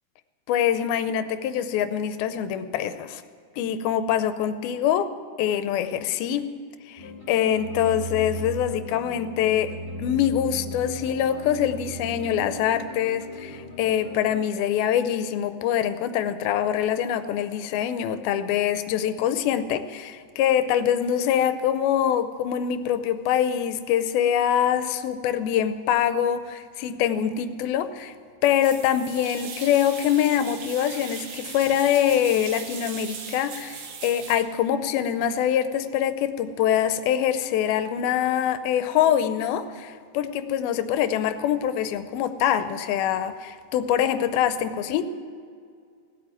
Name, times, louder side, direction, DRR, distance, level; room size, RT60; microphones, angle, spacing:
voice 1, 0.5-3.2 3.6-5.1 5.4-6.5 6.9-9.7 10.0-28.1 28.4-45.0, left 10 dB, 80° left, 11 dB, 2.4 m, -24 dB
sound 1, 7.0-14.3, right 1 dB, 25° left, 1.0 m, -37 dB
sound 2, 28.4-34.4, right 6 dB, 75° right, 3.3 m, -39 dB
16.5 x 8.4 x 8.9 m, 2.2 s
omnidirectional pair, 4.4 m